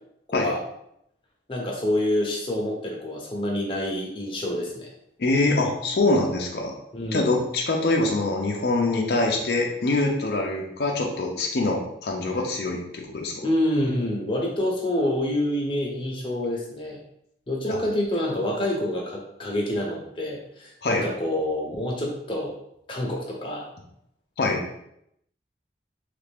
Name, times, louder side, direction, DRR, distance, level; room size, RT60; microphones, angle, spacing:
voice 1, 0.3-0.6 1.5-4.9 6.9-7.3 13.4-17.0 17.5-22.5 22.9-23.7, left 1 dB, 30° left, -2 dB, 0.7 m, -27 dB
voice 2, 5.2-6.7 7.1-13.5 17.7-17.8 20.8-21.0 24.4-24.6, left 2 dB, 60° left, 0 dB, 0.5 m, -24 dB
3.2 x 2.4 x 3.4 m, 0.75 s
head